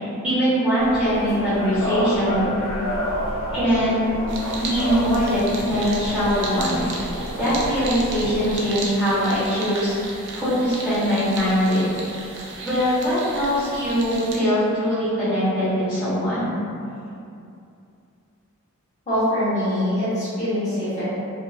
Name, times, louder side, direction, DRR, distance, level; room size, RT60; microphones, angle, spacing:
voice 1, 0.0-2.5 3.5-4.2 4.6-6.9 7.4-10.0 10.3-12.0 12.6-16.6, equal, 5° right, -14 dB, 1.0 m, -22 dB
sound 1, 0.8-8.6, equal, 60° left, 0.7 m, -30 dB
sound 2, 4.3-14.4, right 3 dB, 55° right, 0.4 m, -35 dB
voice 2, 19.1-21.0, equal, 30° left, -13 dB, 0.9 m, -23 dB
2.6 x 2.5 x 2.4 m, 2.6 s
head